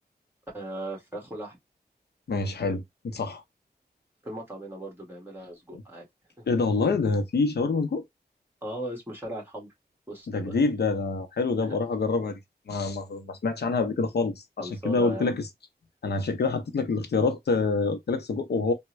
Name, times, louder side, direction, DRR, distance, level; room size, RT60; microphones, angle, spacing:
voice 1, 0.5-1.6 4.2-6.0 6.4-6.5 8.6-9.7 10.1-10.6 11.7-11.8 14.6-15.4, right 1 dB, 15° right, 1.6 m, -37 dB
voice 2, 2.3-3.4 5.7-5.8 6.5-8.0 10.3-12.4 12.7-15.5 16.0-18.7, left 4 dB, 75° left, 0.7 m, -26 dB
3.4 x 2.2 x 3.0 m
wide cardioid pair, 110°, 17 cm